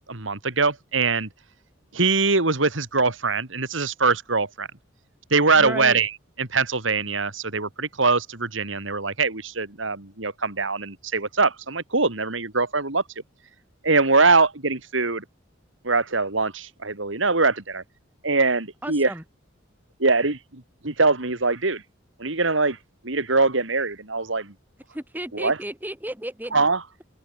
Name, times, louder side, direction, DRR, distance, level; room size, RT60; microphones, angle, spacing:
voice 1, 0.1-1.3 1.9-4.7 5.3-6.1 6.4-13.0 13.8-15.2 15.8-17.8 18.2-19.1 20.0-21.8 22.2-22.8 23.0-24.5 25.3-25.6 26.5-26.8, right 3 dB, 80° right, 2.9 m, -22 dB
voice 2, 5.5-6.0 18.8-19.2 24.9-26.6, right 1 dB, 10° right, 5.0 m, -33 dB
open air
head